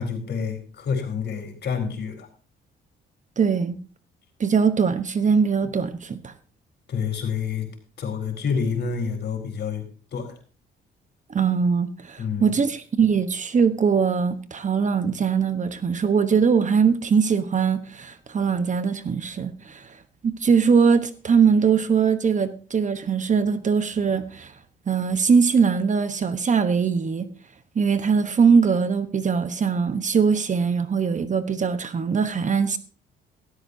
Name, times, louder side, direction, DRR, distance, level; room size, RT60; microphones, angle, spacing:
voice 1, 0.0-2.3 6.9-7.7 8.0-9.8 10.1-10.4 12.2-12.6, left 6 dB, 60° left, 4.4 m, -28 dB
voice 2, 3.4-3.8 4.4-6.3 11.3-19.9 20.2-24.5 24.9-27.3 27.7-32.8, right 6 dB, 40° right, 1.1 m, -21 dB
16.5 x 13.0 x 2.8 m
cardioid pair, 90°, 20 cm